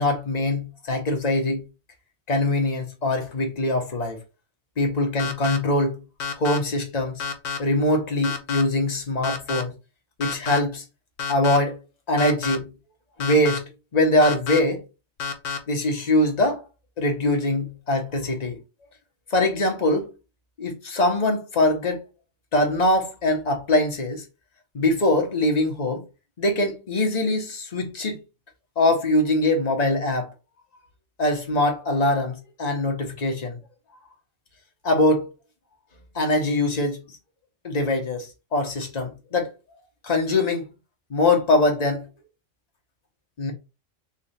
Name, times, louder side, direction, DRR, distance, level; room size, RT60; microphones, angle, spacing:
voice 1, 0.0-1.7 2.3-4.2 4.8-6.0 6.4-7.2 7.6-9.7 10.2-10.8 11.3-11.8 12.1-12.7 13.2-14.8 15.7-16.6 17.0-18.6 19.3-20.1 20.6-22.0 22.5-24.2 24.7-26.0 26.4-28.2 28.8-30.3 31.2-33.6 34.8-35.3 36.1-37.2 37.6-39.5 40.0-40.7 41.1-42.1 43.4-43.5, left 1 dB, 35° left, 1.0 m, -23 dB
sound 1, 5.2-5.6 6.2-6.6 7.2-7.6 8.2-8.6 9.2-9.6 10.2-10.6 11.2-11.6 12.2-12.6 13.2-13.6 14.2-14.6 15.2-15.6, left 6 dB, 80° left, 1.1 m, -29 dB
3.3 x 2.5 x 4.1 m
omnidirectional pair, 1.3 m